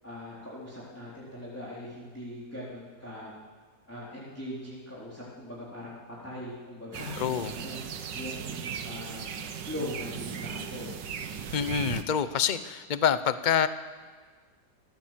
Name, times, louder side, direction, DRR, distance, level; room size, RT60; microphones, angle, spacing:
voice 1, 0.0-3.3 3.9-7.8 8.1-9.2 9.6-10.9, left 1 dB, 10° left, -7 dB, 3.8 m, -40 dB
sound 1, 6.9-12.0, right 7 dB, 85° right, 1.8 m, -37 dB
voice 2, 7.2-7.5 11.5-13.7, left 8 dB, 40° left, 12 dB, 0.6 m, -26 dB
27.5 x 14.5 x 7.6 m, 1.5 s
omnidirectional pair, 1.9 m